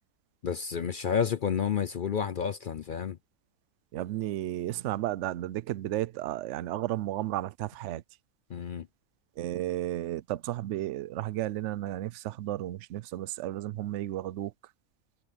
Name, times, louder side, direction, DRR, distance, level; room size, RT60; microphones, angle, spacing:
voice 1, 0.4-3.2 8.5-8.9, left 7 dB, 55° left, 0.6 m, -30 dB
voice 2, 3.9-8.0 9.4-14.5, right 14 dB, 65° right, 0.8 m, -33 dB
omnidirectional pair, 1.5 m